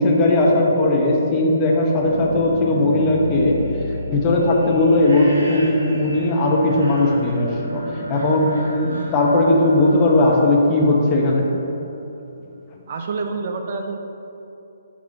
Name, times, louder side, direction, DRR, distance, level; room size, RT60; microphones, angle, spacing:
voice 1, 0.0-3.6 4.1-11.5, left 2 dB, 25° left, -1 dB, 0.9 m, -18 dB
sound 1, 1.7-11.5, right 1 dB, 70° right, 1.5 m, -33 dB
voice 2, 12.9-14.0, right 4 dB, 50° right, 4 dB, 0.5 m, -27 dB
5.3 x 5.0 x 3.9 m, 2.9 s
hypercardioid pair, 140°, 0 cm